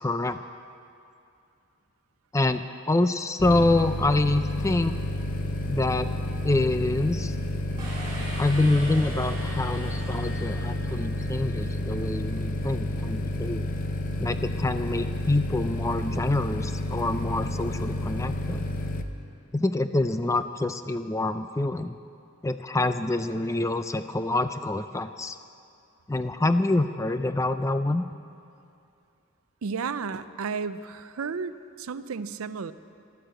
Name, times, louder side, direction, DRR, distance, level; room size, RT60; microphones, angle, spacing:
voice 1, 0.0-0.4 2.3-5.0 5.7-6.1 6.4-7.3 8.4-13.7 14.2-18.7 19.5-22.0 22.4-25.4 26.1-28.0, left 2 dB, 15° left, 10 dB, 0.4 m, -26 dB
sound 1, 3.4-19.0, left 1 dB, 40° left, 0.7 m, -30 dB
sound 2, 7.8-11.5, right 1 dB, 20° right, 3.6 m, -40 dB
voice 2, 29.6-32.7, right 5 dB, 80° right, 14 dB, 0.5 m, -33 dB
13.5 x 12.0 x 7.8 m, 2.5 s
head